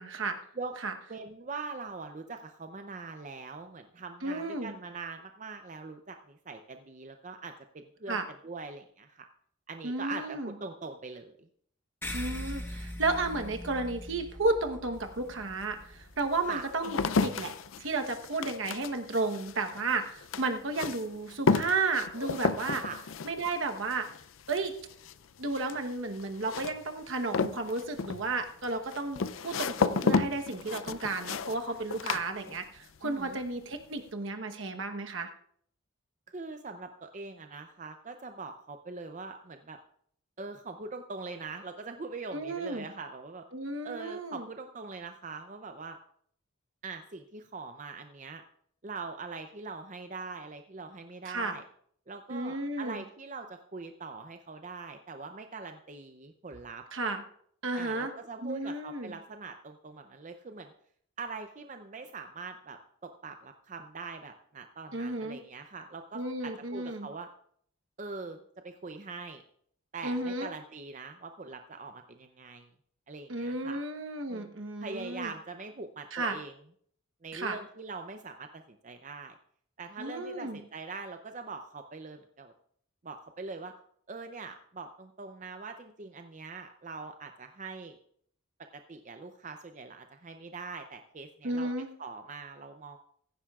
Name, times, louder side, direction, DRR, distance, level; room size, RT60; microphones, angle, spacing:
voice 1, 0.0-0.4 0.8-0.9 4.2-4.7 8.1-8.3 9.8-10.5 12.1-17.5 17.8-22.8 23.2-24.1 24.5-24.7 25.4-35.3 42.3-42.9 43.5-44.5 51.2-51.5 52.3-53.0 56.9-57.2 57.6-58.1 58.4-59.1 64.9-65.4 66.1-67.1 70.0-70.5 73.3-75.3 76.1-76.4 77.3-77.6 80.0-80.6 91.4-91.9, right 3 dB, 65° right, 5 dB, 1.1 m, -33 dB
voice 2, 1.1-9.3 9.7-11.5 16.4-16.6 22.8-23.0 32.0-32.2 33.0-33.4 36.3-39.8 40.4-43.4 43.8-46.0 46.8-48.4 48.8-51.6 52.1-56.8 57.8-60.7 61.2-67.3 68.0-68.4 68.6-69.4 69.9-72.7 73.1-73.8 74.3-74.5 74.8-76.5 77.2-79.3 79.8-82.5 83.0-83.7 84.1-88.0 88.7-91.7 92.0-93.0, right 4 dB, 35° right, 6 dB, 0.5 m, -42 dB
sound 1, 12.0-16.9, left 1 dB, 10° left, 1.2 m, -41 dB
sound 2, 15.0-15.1 15.8-33.0 33.2-33.8, left 4 dB, 70° left, 0.5 m, -33 dB
16.0 x 14.5 x 2.4 m, 0.64 s
head